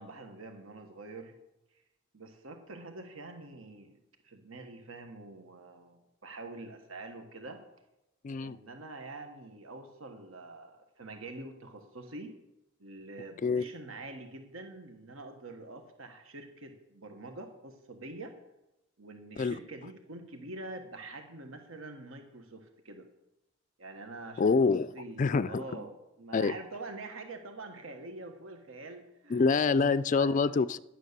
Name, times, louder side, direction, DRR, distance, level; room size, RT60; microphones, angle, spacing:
voice 1, 0.0-1.3 2.1-4.0 4.2-7.6 8.4-12.3 12.8-18.3 19.0-23.1 23.8-24.5 24.9-30.3, right 2 dB, 75° right, 5 dB, 1.4 m, -45 dB
voice 2, 8.2-8.6 13.4-13.6 19.4-19.6 24.4-25.8 26.3-26.5 29.3-30.8, left 4 dB, 40° left, 17 dB, 0.3 m, -26 dB
11.0 x 9.3 x 6.7 m, 0.93 s
head